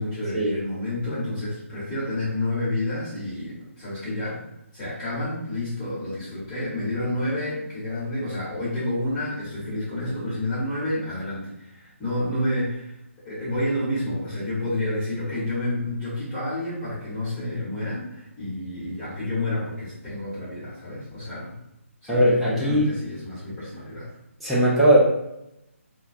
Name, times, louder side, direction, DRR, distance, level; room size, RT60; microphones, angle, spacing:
voice 1, 0.0-4.4 4.7-12.9 13.2-21.5 22.0-24.1, left 1 dB, 15° left, -12 dB, 1.1 m, -29 dB
voice 2, 22.1-22.9 24.4-25.0, equal, ahead, -10 dB, 0.4 m, -19 dB
2.3 x 2.2 x 2.5 m, 0.84 s
figure-of-eight pair, 150°, 8 cm